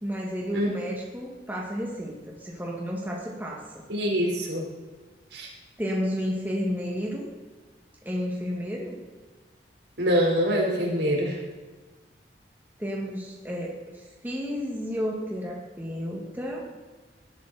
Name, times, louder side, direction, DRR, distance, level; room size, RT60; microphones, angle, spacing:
voice 1, 0.0-3.8 5.8-7.3 8.0-9.0 12.8-16.7, equal, 10° right, -2 dB, 2.1 m, -32 dB
voice 2, 3.9-4.6 5.3-5.5 10.0-11.4, equal, 70° right, -1 dB, 4.5 m, -24 dB
19.5 x 13.0 x 4.3 m, 1.3 s
head